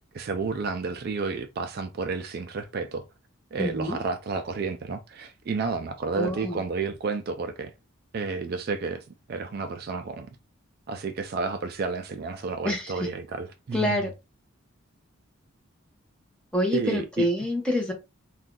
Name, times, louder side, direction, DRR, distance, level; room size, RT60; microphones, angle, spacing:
voice 1, 0.1-3.0 3.5-7.7 8.1-10.3 10.9-14.1 16.7-17.3, right 4 dB, 45° right, 0.3 m, -31 dB
voice 2, 3.6-4.0 6.2-6.6 12.6-13.1 13.7-14.1 16.5-17.9, left 1 dB, 5° left, 0.8 m, -27 dB
2.6 x 2.3 x 3.6 m
head